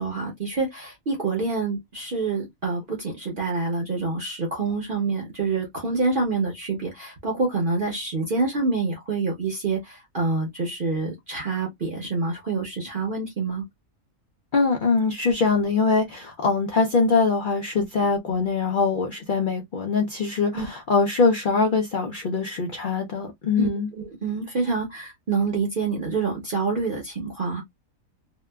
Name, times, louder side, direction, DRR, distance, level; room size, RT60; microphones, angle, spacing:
voice 1, 0.0-13.6 20.5-20.7 23.6-23.7 24.0-27.6, right 3 dB, 45° right, 0.7 m, -27 dB
voice 2, 14.5-23.9, left 4 dB, 85° left, 0.4 m, -23 dB
2.8 x 2.2 x 2.2 m
omnidirectional pair, 1.5 m